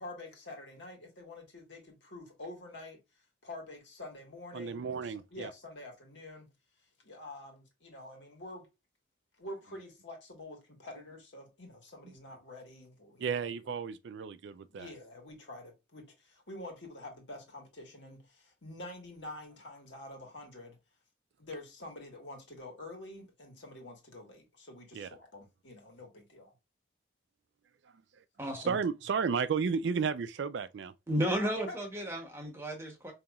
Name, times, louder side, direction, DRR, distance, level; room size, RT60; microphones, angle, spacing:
voice 1, 0.0-3.0 3.4-6.5 7.0-8.7 9.4-13.4 14.7-20.8 21.4-26.5 28.5-28.7 31.4-31.8, left 2 dB, 65° left, 1.5 m, -47 dB
voice 2, 4.5-5.5 12.0-12.1 13.2-14.9 24.9-25.1 28.7-30.9, right 6 dB, 60° right, 0.3 m, -33 dB
voice 3, 28.4-28.7 31.1-33.1, equal, 15° right, 1.0 m, -33 dB
5.2 x 2.8 x 2.3 m
head